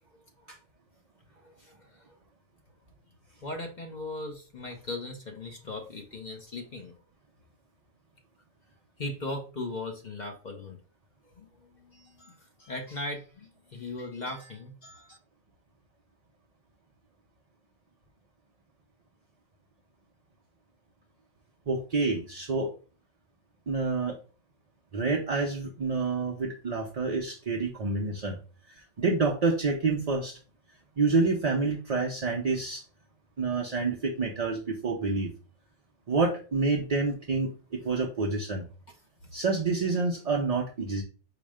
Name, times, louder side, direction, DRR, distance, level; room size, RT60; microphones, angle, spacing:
voice 1, 1.4-1.9 3.4-6.9 9.0-10.8 11.3-11.5 11.8-15.2, left 2 dB, 40° left, 2 dB, 0.7 m, -38 dB
voice 2, 21.7-22.7 23.7-24.1 24.9-28.4 28.7-30.4 31.0-32.8 33.4-35.3 36.1-38.6 39.3-41.0, right 3 dB, 45° right, 0 dB, 0.5 m, -28 dB
4.9 x 2.1 x 4.8 m, 0.36 s
omnidirectional pair, 1.4 m